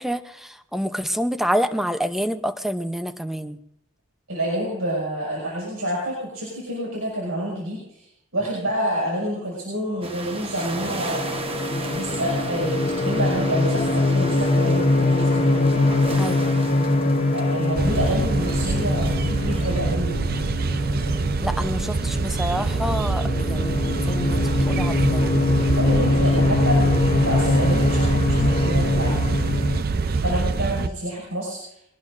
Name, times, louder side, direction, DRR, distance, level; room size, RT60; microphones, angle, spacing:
voice 1, 0.0-3.6 16.2-16.6 21.4-25.3, equal, ahead, 9 dB, 0.7 m, -28 dB
voice 2, 4.3-8.0 8.3-11.3 11.8-15.6 17.3-20.2 25.8-29.6 30.0-31.6, right 1 dB, 80° right, -4 dB, 6.1 m, -28 dB
sound 1, 10.0-19.8, right 3 dB, 25° right, 1.1 m, -36 dB
sound 2, 10.3-29.8, left 2 dB, 30° left, 0.9 m, -23 dB
sound 3, 17.8-30.9, right 4 dB, 45° right, 0.5 m, -25 dB
23.0 x 19.0 x 2.6 m, 0.78 s
head